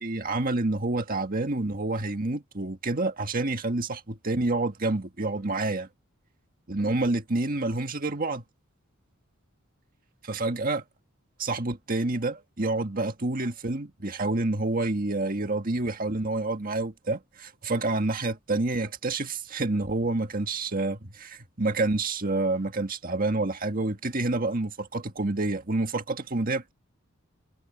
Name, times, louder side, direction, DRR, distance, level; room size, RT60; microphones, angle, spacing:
voice 1, 0.0-5.9 6.7-8.4 10.2-10.8 11.4-26.7, right 2 dB, 45° right, 1.7 m, -28 dB
head